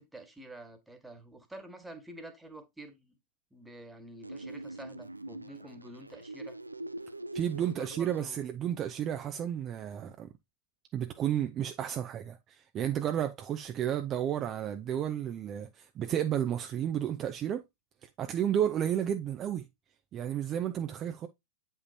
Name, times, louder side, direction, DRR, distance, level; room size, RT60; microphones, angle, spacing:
voice 1, 0.0-3.1 3.5-6.6 7.5-8.4, right 1 dB, 5° right, 1.6 m, -48 dB
sound 1, 4.2-8.2, right 1 dB, 90° right, 0.4 m, -43 dB
voice 2, 7.3-10.3 10.9-17.6 18.2-19.6 20.1-21.3, right 10 dB, 30° right, 0.7 m, -32 dB
8.1 x 5.6 x 2.8 m
figure-of-eight pair, 100°, 0 cm